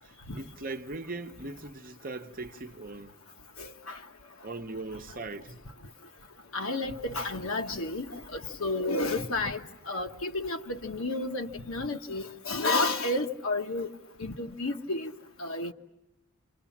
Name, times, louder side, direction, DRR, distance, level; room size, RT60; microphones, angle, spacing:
voice 1, 0.0-3.1 4.4-5.6, right 3 dB, 40° right, 0.9 m, -39 dB
voice 2, 3.6-4.0 6.5-13.9 14.2-15.1 15.4-15.7, left 2 dB, 70° left, 1.3 m, -31 dB
29.0 x 27.5 x 7.2 m
head